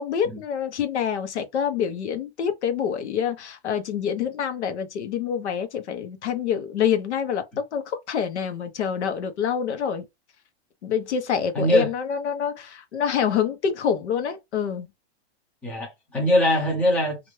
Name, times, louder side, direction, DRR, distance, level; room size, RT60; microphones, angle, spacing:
voice 1, 0.0-10.0 10.8-14.9, left 8 dB, 85° left, 1.0 m, -26 dB
voice 2, 11.5-11.9 15.6-17.2, left 1 dB, 5° left, 0.6 m, -22 dB
2.8 x 2.5 x 3.1 m
supercardioid pair, 165°, 33 cm